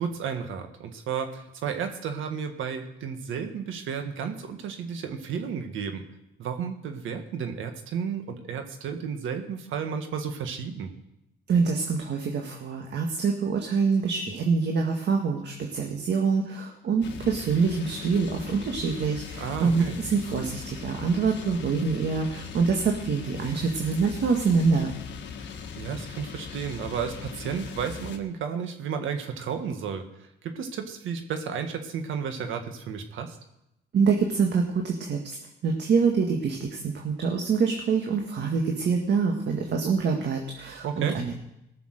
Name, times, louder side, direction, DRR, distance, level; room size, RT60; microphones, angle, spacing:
voice 1, 0.0-6.0 6.4-10.9 19.4-20.0 25.8-33.4 40.8-41.2, right 7 dB, 80° right, 6 dB, 1.7 m, -32 dB
voice 2, 11.5-24.9 33.9-35.4 35.6-41.4, right 5 dB, 60° right, 1 dB, 1.8 m, -25 dB
sound 1, 17.0-28.2, left 6 dB, 65° left, 1.5 m, -39 dB
18.5 x 6.9 x 6.6 m, 0.84 s
cardioid pair, 90°, 20 cm